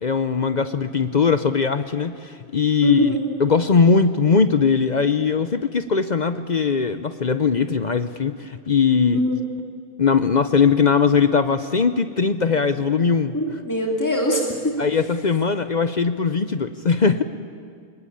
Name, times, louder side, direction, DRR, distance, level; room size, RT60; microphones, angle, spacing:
voice 1, 0.0-3.1 3.4-9.2 10.0-13.3 14.8-17.2, left 5 dB, 50° left, 11 dB, 0.5 m, -20 dB
voice 2, 2.8-3.3 9.1-9.4 13.3-14.8, equal, 10° left, 0 dB, 2.8 m, -22 dB
24.5 x 21.0 x 8.7 m, 2.1 s
omnidirectional pair, 1.6 m